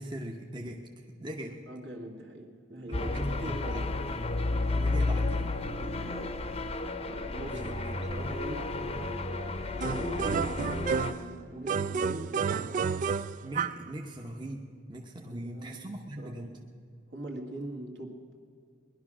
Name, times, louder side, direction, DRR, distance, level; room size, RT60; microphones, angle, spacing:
voice 1, 0.0-1.6 2.9-3.8 4.1-4.2 4.7-5.5 7.5-8.1 13.4-16.6, right 1 dB, 25° right, 1 dB, 0.9 m, -41 dB
voice 2, 1.7-4.1 5.7-6.4 7.1-9.4 9.9-13.0 15.3-15.8 16.2-16.6 17.1-18.2, right 1 dB, 65° right, 0 dB, 2.1 m, -42 dB
sound 1, 2.9-11.1, left 2 dB, 30° left, 0.7 m, -32 dB
Funny Loop, 9.8-11.3 11.7-13.9, right 6 dB, 40° right, 0.3 m, -30 dB
19.0 x 11.5 x 6.1 m, 2.3 s
head